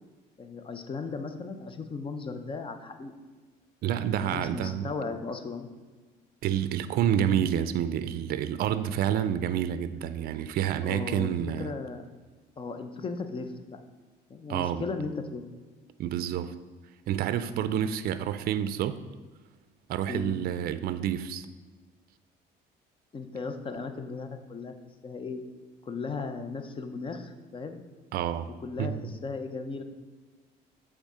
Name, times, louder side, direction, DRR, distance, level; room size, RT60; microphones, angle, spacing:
voice 1, 0.4-3.1 4.2-5.7 10.8-12.0 12.6-13.8 14.3-15.4 20.1-20.4 23.1-24.7 25.0-25.4 25.8-27.8 28.6-29.8, left 4 dB, 30° left, 0.7 m, -36 dB
voice 2, 3.8-4.9 6.4-11.7 14.5-14.8 16.0-16.5 17.1-19.0 19.9-21.5 28.1-28.5 28.8-29.1, right 10 dB, 65° right, 0.4 m, -28 dB
7.9 x 3.6 x 4.9 m
cardioid pair, 110°, 17 cm